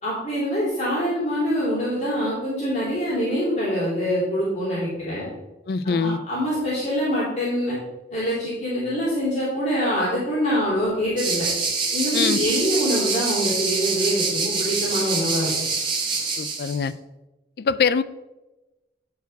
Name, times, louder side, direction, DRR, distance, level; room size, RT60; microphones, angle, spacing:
voice 1, 0.0-5.3 5.8-7.8 8.1-11.5 11.9-15.5, equal, 40° left, -9 dB, 3.1 m, -24 dB
voice 2, 5.7-6.2 12.1-12.4 16.4-16.9 17.6-18.0, left 5 dB, 60° left, 15 dB, 0.3 m, -23 dB
sound 1, 11.2-16.8, right 4 dB, 25° right, 1.3 m, -25 dB
9.2 x 4.8 x 4.6 m, 1.0 s
head